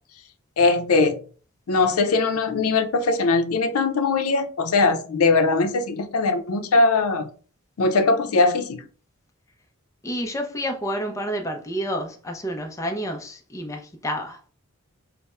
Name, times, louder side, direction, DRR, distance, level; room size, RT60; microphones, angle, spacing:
voice 1, 0.6-1.2 1.7-7.3 7.8-8.9, left 3 dB, 85° left, 0.5 m, -20 dB
voice 2, 10.0-14.4, equal, 15° left, 0.5 m, -29 dB
3.4 x 2.0 x 4.2 m
head